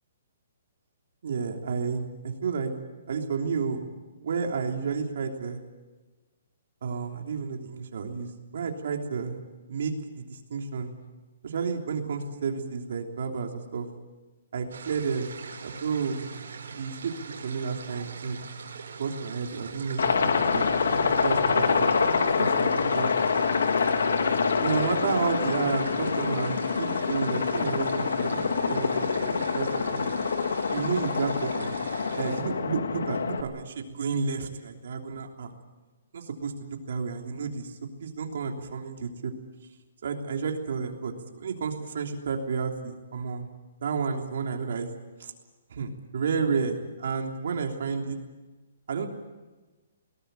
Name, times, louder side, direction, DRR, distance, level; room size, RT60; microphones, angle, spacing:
voice 1, 1.2-2.7 3.1-3.8 4.2-5.6 6.8-9.4 9.7-10.9 11.4-13.9 14.5-15.3 15.6-16.2 16.7-18.4 19.0-20.6 20.9-23.1 24.6-30.1 30.7-31.8 32.1-35.5 36.1-39.3 40.0-43.5 43.8-44.9 45.2-45.3 45.7-48.2 48.9-49.1, right 5 dB, 55° right, 3 dB, 3.3 m, -31 dB
sound 1, 14.7-32.4, right 5 dB, 75° right, 4.9 m, -43 dB
Aircraft, 20.0-33.4, left 5 dB, 85° left, 2.2 m, -26 dB
21.5 x 19.0 x 9.1 m, 1.2 s
hypercardioid pair, 175°, 0 cm